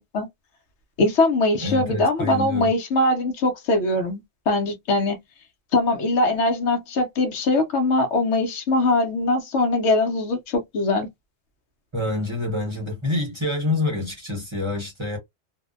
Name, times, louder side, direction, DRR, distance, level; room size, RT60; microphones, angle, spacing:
voice 1, 1.0-5.2 5.7-11.1, left 2 dB, 70° left, 0.9 m, -21 dB
voice 2, 1.6-2.7 11.9-15.2, left 2 dB, 25° right, 0.8 m, -27 dB
2.6 x 2.0 x 2.4 m
omnidirectional pair, 1.3 m